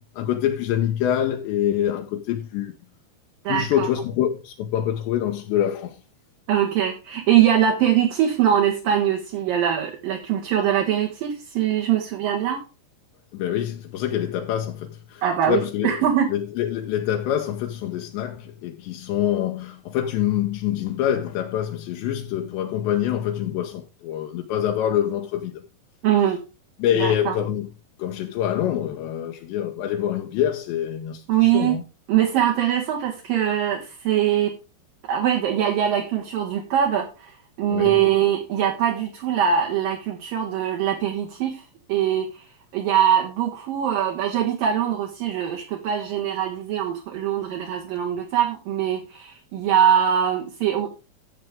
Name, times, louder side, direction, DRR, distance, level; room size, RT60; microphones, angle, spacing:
voice 1, 0.1-2.7 3.5-6.0 13.3-16.0 16.3-25.6 26.8-27.7 28.0-31.8 37.7-38.0, left 10 dB, 80° left, 3.1 m, -25 dB
voice 2, 3.4-3.9 6.5-12.6 15.2-16.3 26.0-26.4 26.9-27.4 31.3-31.8 32.1-34.5 35.1-37.3 37.6-41.6 41.9-42.4 42.7-50.9, right 10 dB, 60° right, 2.8 m, -22 dB
14.0 x 7.4 x 3.6 m
omnidirectional pair, 5.2 m